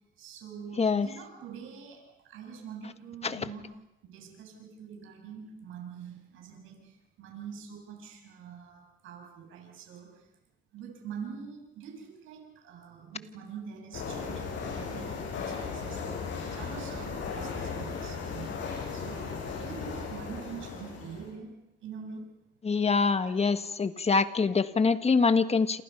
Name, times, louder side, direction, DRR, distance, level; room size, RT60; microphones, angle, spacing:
voice 1, 0.2-3.7 4.0-10.3 10.7-16.2 16.5-21.5 21.8-22.3 23.1-23.3, right 6 dB, 90° right, 1 dB, 7.5 m, -45 dB
sound 1, 13.9-21.3, left 5 dB, 70° left, 7.8 m, -36 dB
voice 2, 22.6-25.8, left 4 dB, 30° left, 10 dB, 1.5 m, -25 dB
28.5 x 28.0 x 5.8 m, 0.90 s
cardioid pair, 90°, 20 cm